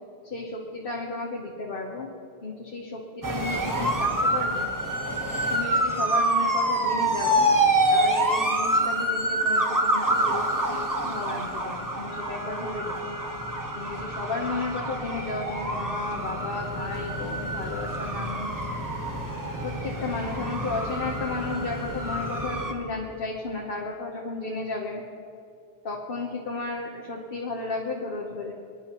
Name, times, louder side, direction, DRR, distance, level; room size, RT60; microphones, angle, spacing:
voice 1, 0.2-2.1 2.4-4.7 5.5-7.5 7.9-13.1 13.7-18.6 19.6-25.0 25.8-28.5, left 3 dB, 55° left, -1 dB, 1.2 m, -33 dB
sound 1, 3.2-22.7, right 1 dB, 20° right, 1.1 m, -27 dB
25.0 x 10.5 x 3.0 m, 2.6 s
omnidirectional pair, 1.1 m